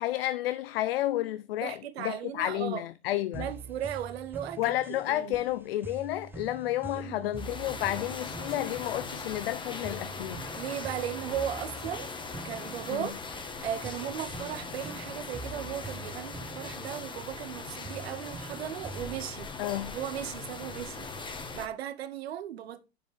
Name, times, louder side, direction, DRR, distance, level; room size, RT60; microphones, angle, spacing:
voice 1, 0.0-3.5 4.6-10.5 12.9-13.1 19.6-20.0, left 14 dB, 60° left, 0.6 m, -31 dB
voice 2, 1.6-2.8 3.4-5.4 6.9-7.3 8.6-8.7 10.5-12.1 12.4-19.5 19.9-21.1 21.5-22.8, right 10 dB, 70° right, 1.1 m, -37 dB
sound 1, 3.3-19.4, right 3 dB, 5° right, 0.5 m, -45 dB
sound 2, 7.4-21.7, left 4 dB, 15° left, 1.4 m, -40 dB
9.6 x 7.5 x 3.3 m
hypercardioid pair, 95°, 32 cm